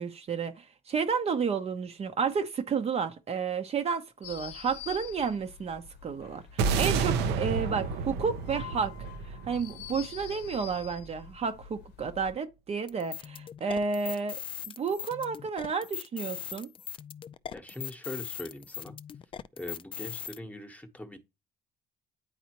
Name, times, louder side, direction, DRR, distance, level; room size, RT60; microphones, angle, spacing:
voice 1, 0.0-8.9 9.3-14.4 14.7-16.7, right 5 dB, 40° right, 0.7 m, -31 dB
sound 1, 4.2-12.3, left 9 dB, 80° left, 0.7 m, -47 dB
sound 2, 6.6-11.0, right 5 dB, 85° right, 0.7 m, -30 dB
sound 3, 12.9-20.4, left 8 dB, 30° left, 0.3 m, -40 dB
voice 2, 17.5-18.9 19.5-21.2, left 1 dB, 10° left, 1.0 m, -41 dB
9.3 x 4.1 x 2.9 m
cardioid pair, 110°, 17 cm